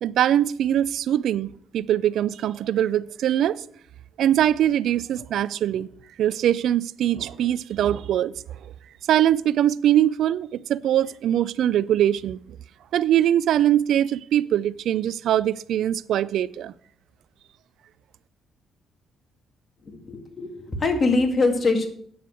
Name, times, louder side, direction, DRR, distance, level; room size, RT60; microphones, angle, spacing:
voice 1, 0.0-3.7 4.2-5.9 6.2-8.3 9.1-12.4 12.9-16.7, right 11 dB, 75° right, 0.4 m, -22 dB
voice 2, 20.1-21.9, left 3 dB, 40° left, 2.0 m, -22 dB
9.3 x 6.9 x 6.2 m
cardioid pair, 90°, 0 cm